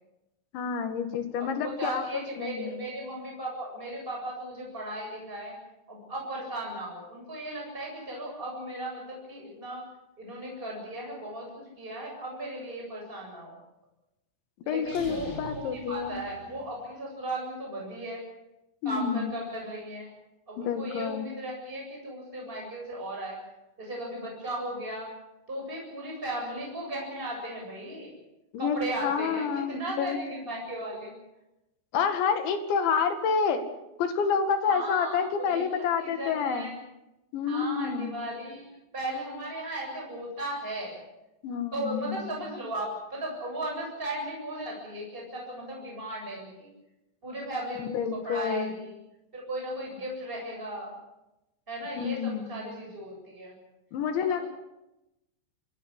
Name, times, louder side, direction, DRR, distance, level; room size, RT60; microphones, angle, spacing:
voice 1, 0.5-2.0 2.4-2.8 14.7-16.2 18.8-19.3 20.6-21.3 28.5-30.2 31.9-33.6 34.0-36.7 37.3-38.2 41.4-42.3 47.8-48.7 52.0-52.5 53.9-54.4, left 6 dB, 70° left, 7 dB, 4.4 m, -28 dB
voice 2, 1.4-5.6 5.9-9.8 10.2-13.5 14.6-18.2 18.8-20.1 20.5-23.4 23.8-25.1 25.5-28.1 28.6-31.2 34.6-36.8 37.5-38.7 38.9-41.0 41.7-46.7 47.2-48.9 49.3-50.9 51.7-53.5 54.1-54.4, right 1 dB, 10° right, -1 dB, 7.9 m, -36 dB
sound 1, 14.8-16.9, left 1 dB, 20° left, 3.3 m, -44 dB
26.0 x 17.0 x 8.8 m, 0.92 s
omnidirectional pair, 5.6 m